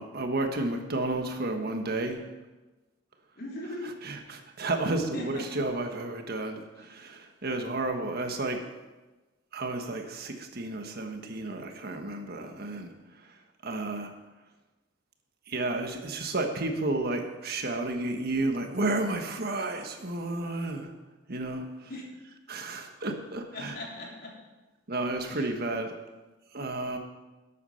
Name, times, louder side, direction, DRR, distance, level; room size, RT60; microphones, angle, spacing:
voice 1, 0.0-2.3 4.0-8.6 9.5-12.9 13.6-14.1 15.5-20.9 21.3-21.9 22.5-23.8 24.9-25.9 26.5-27.0, right 2 dB, 55° right, 5 dB, 1.4 m, -32 dB
voice 2, 3.4-3.9 5.1-5.4 21.9-22.0 23.5-24.3 25.2-25.5, left 1 dB, 55° left, -3 dB, 3.6 m, -38 dB
12.0 x 8.3 x 5.7 m, 1.2 s
head